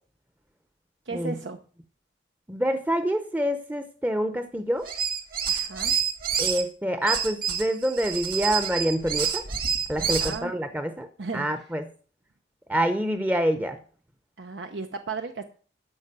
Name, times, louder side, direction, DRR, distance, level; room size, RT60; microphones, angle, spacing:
voice 1, 1.1-1.6 5.5-5.9 10.0-10.5 11.2-11.6 14.4-15.4, right 4 dB, 80° right, 6 dB, 0.8 m, -35 dB
voice 2, 2.5-4.8 6.4-9.4 9.9-11.1 11.3-11.8 12.7-13.8, equal, 10° right, 8 dB, 0.7 m, -26 dB
sound 1, 4.8-6.6 7.1-10.4, right 7 dB, 50° right, 1.9 m, -27 dB
13.0 x 5.0 x 8.2 m, 0.42 s
head